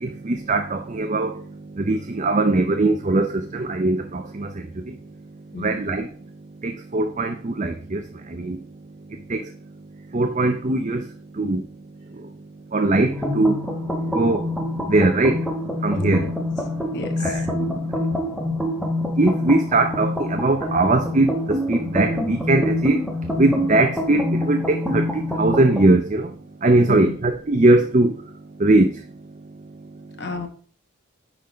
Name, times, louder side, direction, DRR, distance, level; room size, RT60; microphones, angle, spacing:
voice 1, 0.0-1.4 1.8-4.9 5.6-6.1 6.6-8.6 9.3-9.5 10.1-11.1 11.4-11.6 12.7-13.6 14.1-14.5 14.9-15.4 15.8-16.3 17.2-17.8 19.2-23.0 23.4-26.3 26.6-28.1 28.6-28.9, right 2 dB, 35° right, 6 dB, 0.6 m, -20 dB
sound 1, 13.1-25.9, left 1 dB, ahead, 1.2 m, -26 dB
voice 2, 15.9-16.3 16.9-17.5 26.9-27.2 30.2-30.5, left 3 dB, 50° left, 6 dB, 1.2 m, -32 dB
9.9 x 3.9 x 5.1 m, 0.42 s
head